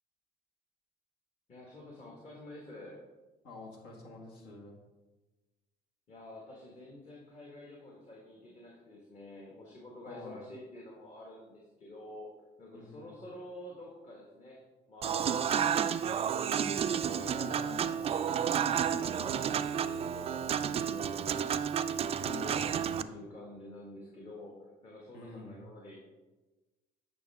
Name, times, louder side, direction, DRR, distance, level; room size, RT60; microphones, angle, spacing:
voice 1, 1.5-3.0 6.1-12.3 12.6-14.6 14.9-18.3 18.7-21.5 21.8-26.0, left 1 dB, 40° left, -3 dB, 1.8 m, -49 dB
voice 2, 3.4-4.8 10.1-10.4 12.7-13.1 17.3-17.8 22.2-23.2 25.1-25.7, left 3 dB, 75° left, 0 dB, 1.9 m, -48 dB
Human voice / Acoustic guitar / Piano, 15.0-23.0, right 8 dB, 35° right, 0.4 m, -31 dB
8.8 x 5.6 x 3.5 m, 1.2 s
cardioid pair, 110°, 17 cm